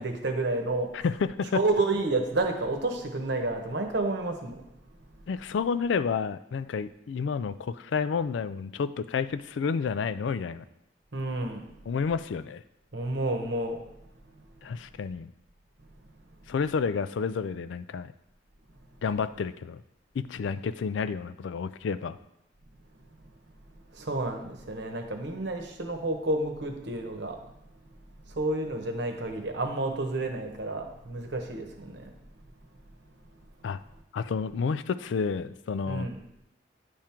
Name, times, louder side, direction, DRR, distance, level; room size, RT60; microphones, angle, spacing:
voice 1, 0.0-0.9 1.5-4.6 11.1-11.6 12.9-13.8 14.3-14.4 23.9-27.4 28.3-32.2 35.9-36.2, right 2 dB, 60° right, 4 dB, 1.0 m, -30 dB
voice 2, 1.0-1.6 5.3-10.6 11.9-12.6 14.6-15.3 16.5-18.1 19.0-19.8 20.2-22.2 33.6-33.8 34.1-36.1, left 5 dB, 70° left, 13 dB, 0.3 m, -30 dB
10.0 x 3.6 x 4.4 m, 0.82 s
head